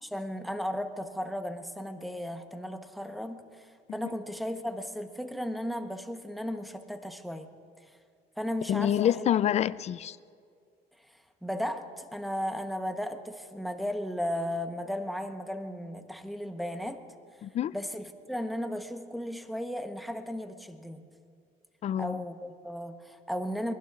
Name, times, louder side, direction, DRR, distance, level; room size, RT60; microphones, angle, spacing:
voice 1, 0.0-7.5 8.4-9.3 11.1-17.0 17.7-21.0 22.0-23.7, equal, ahead, 1.0 m, -35 dB
voice 2, 8.7-10.2 17.4-17.7 21.8-22.2, left 10 dB, 40° left, 0.4 m, -27 dB
23.5 x 20.0 x 2.5 m
cardioid pair, 110°, 17 cm